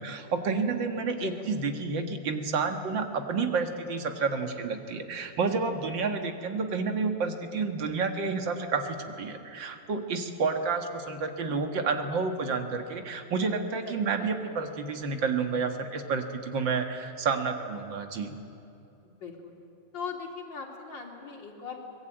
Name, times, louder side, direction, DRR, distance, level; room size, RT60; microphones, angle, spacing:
voice 1, 0.0-18.4, right 4 dB, 85° right, 5 dB, 2.4 m, -30 dB
voice 2, 13.8-14.6 19.0-19.5 19.9-21.8, left 5 dB, 85° left, 1 dB, 3.6 m, -39 dB
23.5 x 20.5 x 9.1 m, 2.7 s
omnidirectional pair, 2.0 m